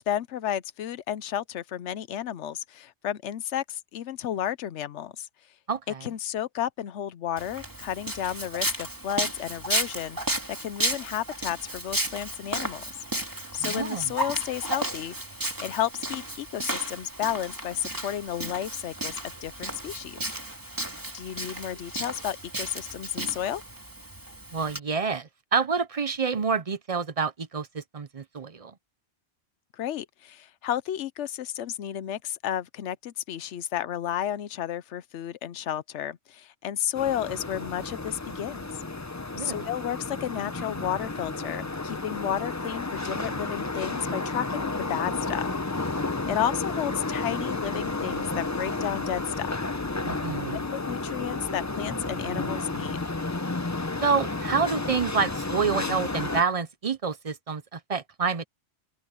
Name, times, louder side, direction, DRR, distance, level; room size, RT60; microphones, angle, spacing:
voice 1, 0.0-5.3 6.0-10.2 10.6-12.8 13.5-20.2 21.1-23.6 29.7-38.6 39.4-46.0 46.3-49.5 50.7-53.0, left 10 dB, 85° left, 1.0 m, -32 dB
voice 2, 5.7-6.0 13.6-14.1 24.5-28.7 39.3-39.7 50.0-50.6 54.0-58.4, right 5 dB, 40° right, 0.7 m, -28 dB
Walk footsteps, 7.4-24.8, right 1 dB, 15° right, 2.4 m, -33 dB
sound 1, 36.9-56.4, left 3 dB, 20° left, 0.7 m, -32 dB
open air
omnidirectional pair, 1.2 m